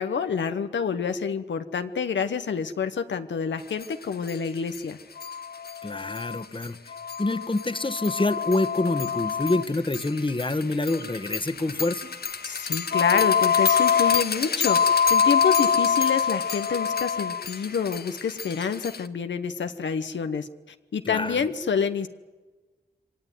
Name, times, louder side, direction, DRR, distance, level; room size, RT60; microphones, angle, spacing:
voice 1, 0.0-5.0 12.4-14.8 15.1-20.5 20.9-22.1, left 6 dB, 85° left, 8 dB, 1.1 m, -28 dB
sound 1, 3.8-3.9 4.3-4.4 4.7-4.8 5.2-19.1, left 7 dB, 60° left, 1.2 m, -25 dB
voice 2, 5.8-12.1 21.0-21.5, left 2 dB, 25° left, 12 dB, 1.5 m, -27 dB
23.5 x 18.5 x 9.4 m, 1.2 s
cardioid pair, 50°, 18 cm